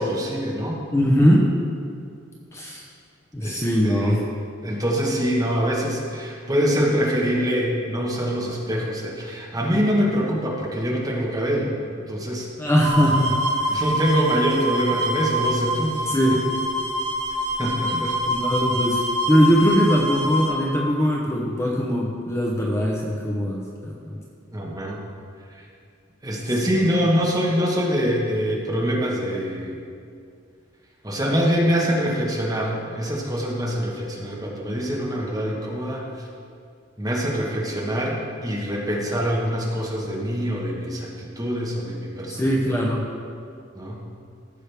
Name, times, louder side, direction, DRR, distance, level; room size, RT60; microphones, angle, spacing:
voice 1, 0.0-0.8 3.4-4.2 4.6-11.7 12.1-12.5 13.7-16.4 17.6-18.2 24.5-25.0 26.2-29.8 31.0-36.0 37.0-42.8 43.7-44.0, equal, 20° right, -3 dB, 1.4 m, -24 dB
voice 2, 0.9-1.5 2.5-2.8 3.3-4.2 12.6-13.4 13.6-13.8 16.1-16.4 17.9-19.0 19.3-24.2 26.6-26.7 42.3-43.0, equal, 15° left, -3 dB, 0.8 m, -21 dB
sound 1, 12.8-20.5, equal, 65° right, 2.1 m, -25 dB
14.5 x 6.4 x 3.5 m, 2.3 s
head